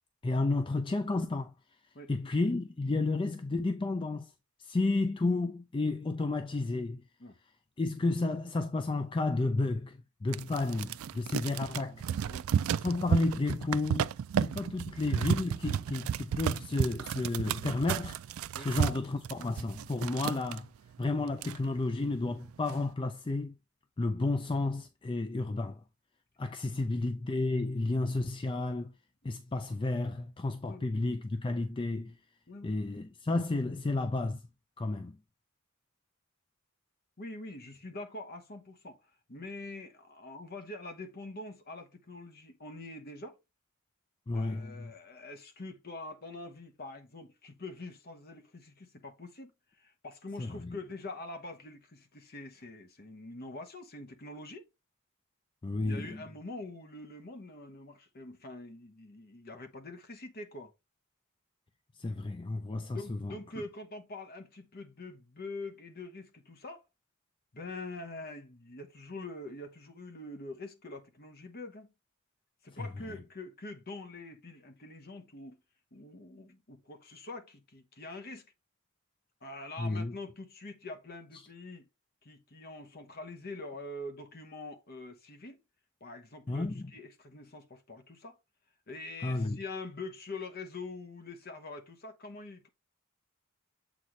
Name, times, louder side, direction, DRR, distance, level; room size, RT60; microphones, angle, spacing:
voice 1, 0.2-1.5 2.1-4.3 4.6-7.0 7.8-12.0 12.8-14.1 14.4-18.2 18.6-20.7 21.0-23.6 24.0-25.8 26.4-28.9 29.2-32.2 32.6-34.4 34.8-35.2 44.3-44.9 50.4-50.8 55.6-56.2 62.0-63.4 72.8-72.9 79.8-80.1 86.5-86.8 89.2-89.6, left 2 dB, 25° left, 0.4 m, -32 dB
shuffling papers, 10.3-20.6 21.1-21.2 21.3-22.0 22.4-22.8, right 8 dB, 70° right, 0.3 m, -33 dB
voice 2, 11.7-12.4 18.5-18.7 26.7-26.8 30.6-30.9 32.5-32.8 37.2-39.0 39.3-43.4 44.3-49.5 49.8-54.6 55.8-60.7 62.9-66.8 67.5-71.9 72.6-75.6 75.9-78.5 79.4-81.8 82.2-85.6 86.0-88.4 88.9-92.7, left 2 dB, 45° left, 1.1 m, -45 dB
7.5 x 4.1 x 3.1 m
head